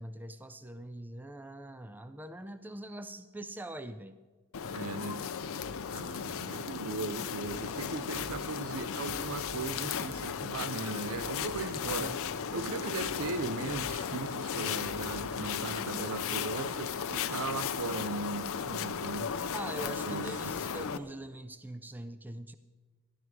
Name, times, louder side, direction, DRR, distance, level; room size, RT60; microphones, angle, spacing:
voice 1, 0.0-4.2 11.7-12.2 19.5-22.6, right 1 dB, 10° right, 0.4 m, -43 dB
sound 1, 4.5-21.0, left 7 dB, 65° left, 0.6 m, -36 dB
voice 2, 4.7-5.2 5.9-12.2 12.5-19.3 20.0-20.5, right 4 dB, 65° right, 0.6 m, -38 dB
sound 2, 5.1-15.3, equal, 30° right, 2.0 m, -52 dB
14.0 x 11.0 x 4.7 m
head